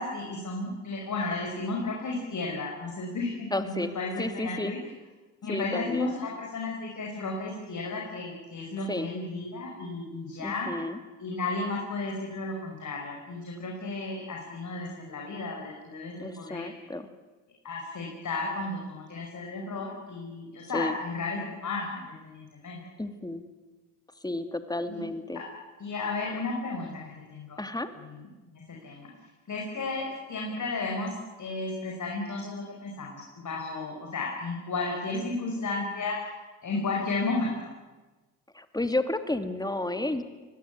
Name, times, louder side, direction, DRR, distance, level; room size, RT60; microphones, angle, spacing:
voice 1, 0.0-4.8 5.4-10.7 11.2-16.7 17.6-22.8 24.9-25.0 25.3-25.4 25.8-26.9 27.3-27.6 28.0-29.1 29.5-31.1 31.4-36.2 36.6-37.6, left 3 dB, 50° left, -1 dB, 5.7 m, -33 dB
voice 2, 3.5-3.9 4.2-4.7 5.5-6.2 8.9-9.1 10.4-11.0 16.2-17.1 20.7-20.9 23.0-23.4 24.2-25.4 27.6-27.9 38.5-40.2, left 2 dB, 10° left, 9 dB, 2.5 m, -31 dB
24.0 x 18.0 x 9.6 m, 1.2 s
hypercardioid pair, 50°, 40 cm